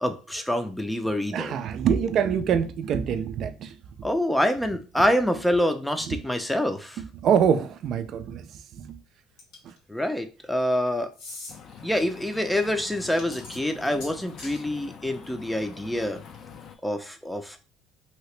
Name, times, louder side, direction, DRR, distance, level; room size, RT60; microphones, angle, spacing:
voice 1, 0.0-1.6 4.0-7.0 9.9-11.1 11.8-16.2 16.8-17.6, left 1 dB, 5° left, 0.5 m, -26 dB
voice 2, 1.3-3.8 6.1-6.2 7.0-9.0 9.6-9.7, right 7 dB, 55° right, 0.4 m, -25 dB
sound 1, 9.4-9.8 11.1-11.6 13.0-14.6, left 2 dB, 70° left, 1.5 m, -42 dB
sound 2, 11.5-16.8, left 7 dB, 50° left, 0.5 m, -45 dB
2.9 x 2.8 x 3.2 m
cardioid pair, 105°, 0 cm